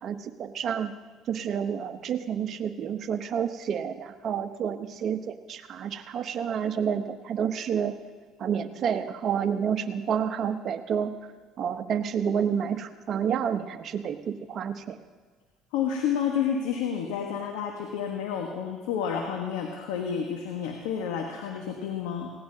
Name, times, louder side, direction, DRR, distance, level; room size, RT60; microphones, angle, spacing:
voice 1, 0.0-0.9 1.3-7.9 8.4-11.1 11.6-15.0, right 8 dB, 55° right, 8 dB, 1.0 m, -29 dB
voice 2, 15.7-22.3, left 7 dB, 80° left, 2 dB, 1.4 m, -30 dB
18.5 x 17.0 x 2.9 m, 1.4 s
supercardioid pair, 75°, 0 cm